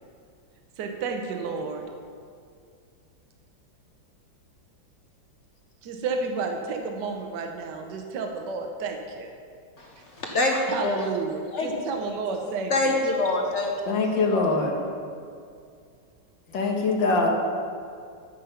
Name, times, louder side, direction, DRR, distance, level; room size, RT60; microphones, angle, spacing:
voice 1, 0.8-1.8 5.8-9.3 10.7-13.0, right 4 dB, 65° right, 3 dB, 1.4 m, -31 dB
voice 2, 10.2-11.1 11.5-11.9 12.7-13.7, left 2 dB, 45° left, 0 dB, 1.0 m, -25 dB
voice 3, 13.9-14.7 16.5-17.3, left 3 dB, 70° left, 0 dB, 1.9 m, -23 dB
13.0 x 5.4 x 5.6 m, 2.3 s
omnidirectional pair, 2.1 m